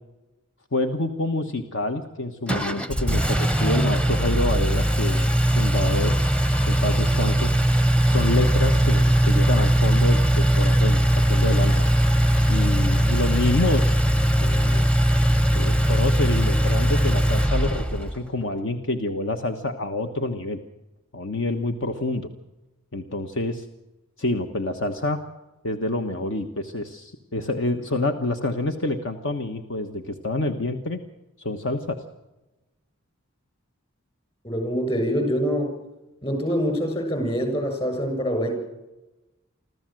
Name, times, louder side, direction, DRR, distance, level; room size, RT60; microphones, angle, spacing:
voice 1, 0.7-6.2 6.7-7.5 8.1-11.0 11.3-11.9 12.5-13.9 14.4-14.8 15.5-20.6 21.1-22.3 22.9-23.6 24.2-25.2 25.6-31.0 31.4-32.0, left 2 dB, 65° left, 7 dB, 1.3 m, -27 dB
Engine, 2.5-18.2, right 1 dB, 5° left, 0.9 m, -20 dB
voice 2, 34.4-35.7 36.2-38.5, equal, 30° left, 5 dB, 7.5 m, -25 dB
26.0 x 14.5 x 7.7 m, 1.0 s
head